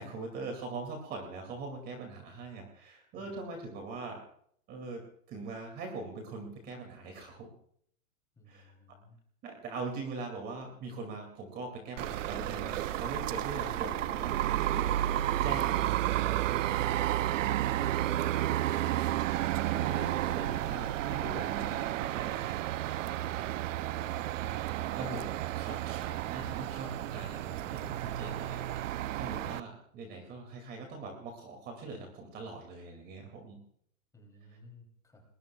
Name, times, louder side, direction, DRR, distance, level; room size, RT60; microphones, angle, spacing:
voice 1, 0.0-4.2 4.7-5.0 5.3-7.5 8.5-8.7 9.4-15.2 15.4-16.8 19.6-22.4 24.9-25.3 25.5-33.6, right 3 dB, 25° right, 3 dB, 2.5 m, -42 dB
voice 2, 8.3-9.2 17.4-17.7 18.1-18.3 34.1-35.2, left 2 dB, 10° left, 2 dB, 3.1 m, -56 dB
sound 1, 12.0-29.6, right 13 dB, 60° right, 0.6 m, -32 dB
29.5 x 20.5 x 2.4 m, 0.63 s
supercardioid pair, 160°, 42 cm